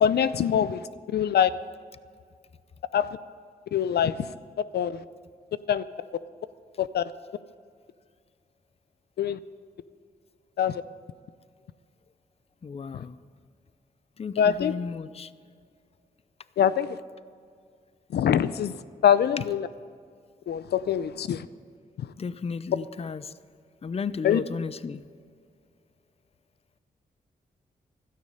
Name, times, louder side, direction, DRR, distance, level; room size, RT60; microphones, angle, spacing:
voice 1, 0.0-1.5 2.9-3.1 3.7-4.3 4.7-5.0 5.7-5.8 6.8-7.1 9.2-9.4 10.6-10.8 12.9-13.0 14.4-14.7 16.6-17.0 18.1-18.8 19.0-19.7 20.5-21.5 22.0-22.1 24.2-24.4, left 9 dB, 85° left, 15 dB, 0.5 m, -24 dB
voice 2, 12.6-13.2 14.2-15.3 22.2-23.3 23.8-25.0, left 5 dB, 40° left, 15 dB, 0.5 m, -34 dB
16.5 x 13.0 x 5.5 m, 2.1 s
cardioid pair, 85°, 17 cm